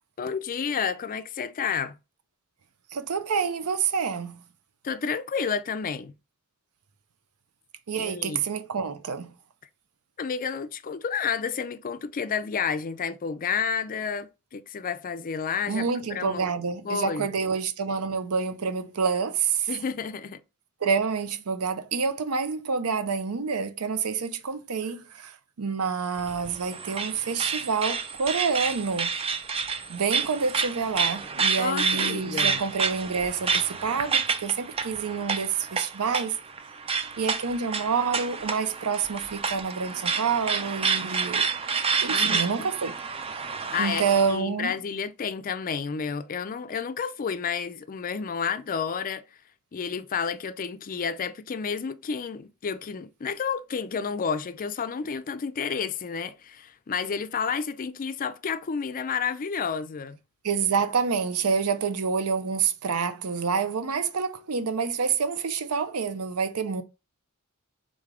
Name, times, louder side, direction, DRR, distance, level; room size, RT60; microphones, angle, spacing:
voice 1, 0.2-2.0 4.8-6.1 8.0-8.4 10.2-15.8 16.1-16.5 16.8-17.3 19.7-20.4 31.6-32.6 42.1-42.7 43.7-49.3 49.7-60.2, left 6 dB, 40° left, 0.4 m, -30 dB
voice 2, 2.9-4.4 7.9-9.3 15.7-19.7 20.8-29.1 29.9-36.4 37.2-41.4 42.0-42.9 43.8-44.7 60.4-66.8, right 5 dB, 75° right, 0.6 m, -28 dB
sound 1, 26.2-44.4, right 5 dB, 25° right, 0.4 m, -29 dB
3.8 x 3.3 x 3.7 m
head